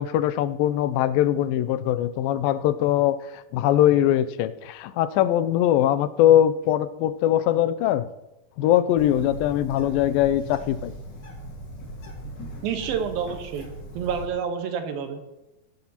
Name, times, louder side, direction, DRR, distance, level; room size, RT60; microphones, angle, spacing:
voice 1, 0.0-8.1 8.6-10.9, left 12 dB, 85° left, 14 dB, 2.3 m, -21 dB
Bird, 9.0-14.3, right 1 dB, 35° left, 2.6 m, -39 dB
voice 2, 12.6-15.2, right 7 dB, 90° right, 6 dB, 3.0 m, -29 dB
18.0 x 11.0 x 2.9 m, 0.98 s
omnidirectional pair, 4.1 m